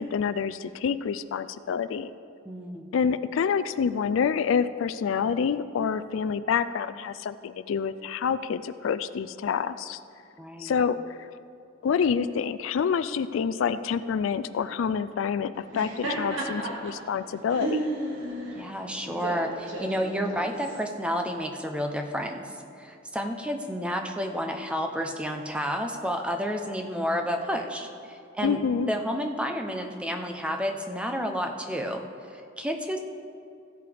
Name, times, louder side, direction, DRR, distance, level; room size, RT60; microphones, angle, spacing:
voice 1, 0.0-2.1 2.9-10.0 10.6-11.3 11.8-17.9 28.4-28.9, left 6 dB, 70° left, 13 dB, 0.3 m, -27 dB
voice 2, 2.5-2.9 10.4-10.7 18.6-22.5 22.8-28.6 28.9-33.0, equal, 5° right, 4 dB, 0.7 m, -30 dB
Laughter, 15.6-20.8, right 1 dB, 65° right, 2.2 m, -34 dB
15.5 x 8.4 x 3.4 m, 2.5 s
head